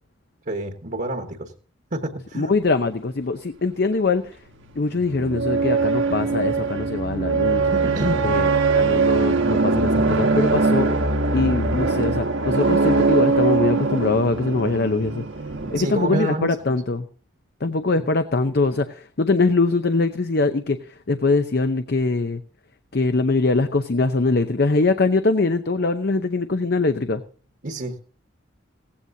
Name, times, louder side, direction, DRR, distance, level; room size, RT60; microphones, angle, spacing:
voice 1, 0.5-1.5 1.9-2.5 7.7-8.3 15.6-16.7 27.6-28.0, right 1 dB, 45° right, 4 dB, 1.2 m, -28 dB
voice 2, 2.3-4.3 4.8-7.7 8.2-10.9 11.3-15.2 15.7-17.1 17.6-20.8 21.1-22.4 22.9-27.2, left 3 dB, 50° left, 9 dB, 0.6 m, -22 dB
sound 1, 4.6-16.2, right 3 dB, 70° right, 1.4 m, -21 dB
17.0 x 16.0 x 2.7 m, 0.40 s
head